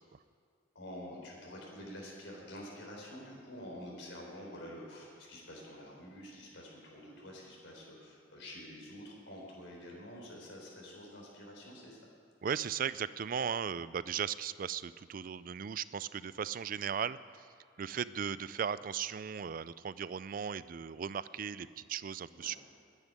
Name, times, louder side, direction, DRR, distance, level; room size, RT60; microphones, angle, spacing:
voice 1, 0.7-12.0 22.3-22.6, equal, 80° left, -2 dB, 4.1 m, -48 dB
voice 2, 12.4-17.2 17.8-22.6, right 7 dB, 50° right, 17 dB, 0.4 m, -37 dB
11.0 x 10.0 x 9.7 m, 2.3 s
head